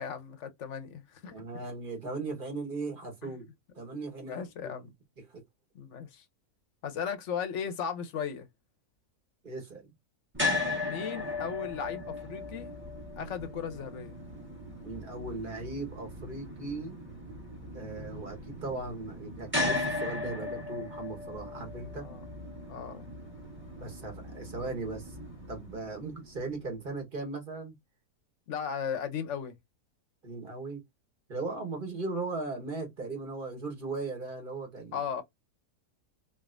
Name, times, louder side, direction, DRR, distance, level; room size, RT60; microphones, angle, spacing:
voice 1, 0.0-1.4 3.2-3.3 4.2-4.9 5.7-6.2 6.8-8.5 10.8-12.7 13.2-14.2 22.0-22.2 22.7-23.1 28.5-29.5 34.9-35.2, left 7 dB, 55° left, 1.0 m, -36 dB
voice 2, 1.3-3.5 3.7-4.9 5.3-5.4 9.4-9.9 14.8-17.0 17.7-22.1 23.8-25.1 25.5-27.7 30.2-30.8 31.3-35.0, right 3 dB, 35° right, 1.5 m, -38 dB
sound 1, 10.3-26.5, left 2 dB, 10° right, 1.3 m, -37 dB
3.9 x 3.5 x 2.5 m
omnidirectional pair, 1.6 m